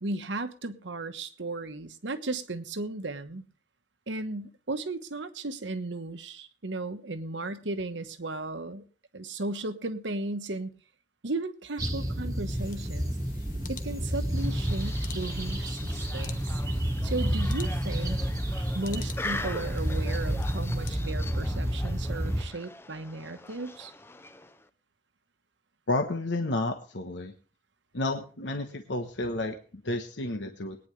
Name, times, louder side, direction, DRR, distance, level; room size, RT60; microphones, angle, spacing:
voice 1, 0.0-3.4 4.1-8.9 9.1-10.7 11.2-13.2 13.7-16.6 17.0-18.2 18.7-23.9, right 2 dB, 85° right, 9 dB, 1.2 m, -35 dB
sound 1, 11.8-22.4, equal, 20° right, 1.4 m, -30 dB
sound 2, 12.5-20.9, left 4 dB, 45° left, 1.3 m, -48 dB
sound 3, 14.3-24.7, left 2 dB, 15° left, 0.6 m, -42 dB
voice 2, 25.9-27.3 27.9-30.8, left 2 dB, 80° left, 5 dB, 1.2 m, -31 dB
21.5 x 9.8 x 3.3 m, 0.40 s
head